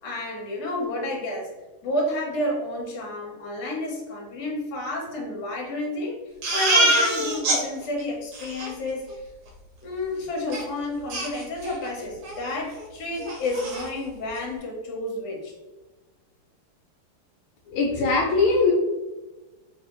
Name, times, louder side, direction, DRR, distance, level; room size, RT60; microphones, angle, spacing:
voice 1, 0.0-1.5 1.8-6.2 6.5-9.0 9.8-15.5, left 1 dB, 55° left, -1 dB, 1.3 m, -30 dB
Crying sobbing, 6.4-7.6 8.0-8.1 8.3-8.7 10.5-10.6 11.1-11.9 12.2-12.4 12.8-12.9 13.2-13.9, right 1 dB, 70° right, 1.6 m, -24 dB
voice 2, 17.7-18.7, left 4 dB, 80° left, -1 dB, 1.4 m, -21 dB
3.3 x 3.2 x 3.0 m, 1.1 s
omnidirectional pair, 2.4 m